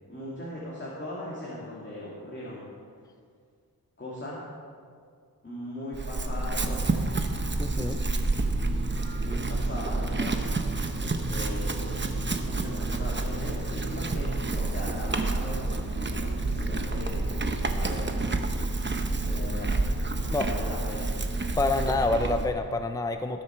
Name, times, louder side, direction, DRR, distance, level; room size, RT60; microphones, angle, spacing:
voice 1, 0.1-2.6 4.0-4.4 5.4-7.0 9.2-10.4 11.0-18.4 19.0-19.7 20.1-21.1, left 1 dB, 30° left, -6 dB, 2.5 m, -39 dB
Chewing mastication / Livestock farm animals working animals, 5.9-22.5, right 2 dB, 30° right, 0.9 m, -29 dB
voice 2, 7.6-8.0 20.3-20.5 21.6-23.4, left 3 dB, 10° left, 7 dB, 0.6 m, -27 dB
19.0 x 7.2 x 4.5 m, 2.1 s
wide cardioid pair, 80°, 38 cm